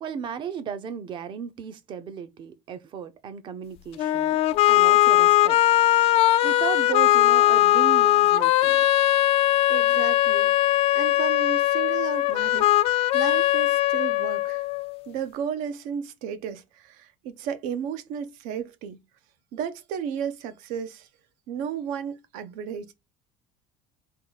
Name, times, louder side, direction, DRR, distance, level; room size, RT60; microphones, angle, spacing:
voice 1, 0.0-4.4 4.7-5.6 5.8-9.0, right 8 dB, 35° right, 0.6 m, -35 dB
sound 1, 4.0-15.0, left 15 dB, 45° left, 0.3 m, -20 dB
voice 2, 9.7-10.5 10.9-14.7 15.1-19.0 19.5-21.1 21.5-22.9, right 8 dB, 70° right, 0.7 m, -33 dB
3.7 x 2.3 x 3.9 m
cardioid pair, 160°, 14 cm